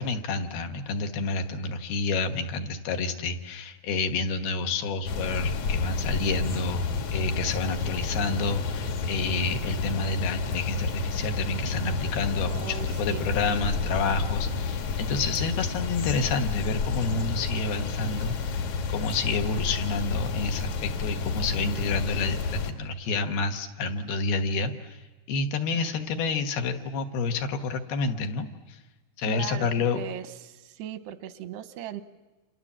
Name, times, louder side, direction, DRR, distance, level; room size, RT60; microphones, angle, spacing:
voice 1, 0.0-6.8 7.1-25.0 25.3-28.8 29.2-30.0, left 4 dB, 75° left, 5 dB, 3.2 m, -29 dB
sound 1, 5.1-22.7, left 4 dB, 55° left, 2.6 m, -30 dB
voice 2, 12.5-13.3 13.9-14.1 20.1-20.2 25.7-25.9 29.2-29.7 29.9-32.0, right 10 dB, 85° right, 11 dB, 3.1 m, -38 dB
29.0 x 27.0 x 7.4 m, 1.2 s
omnidirectional pair, 4.6 m